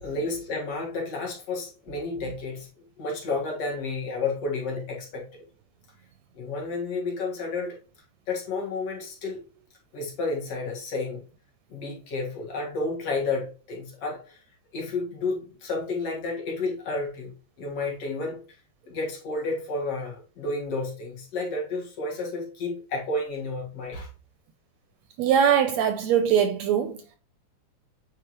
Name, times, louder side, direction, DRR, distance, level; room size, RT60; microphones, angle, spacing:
voice 1, 0.0-2.7 3.0-5.3 6.3-7.8 8.3-9.4 9.9-11.2 11.7-14.4 14.7-17.3 17.6-18.4 18.9-24.1, left 3 dB, 55° left, 2.6 m, -31 dB
voice 2, 25.2-27.2, right 8 dB, 80° right, 1.7 m, -22 dB
8.6 x 4.5 x 3.0 m
omnidirectional pair, 3.5 m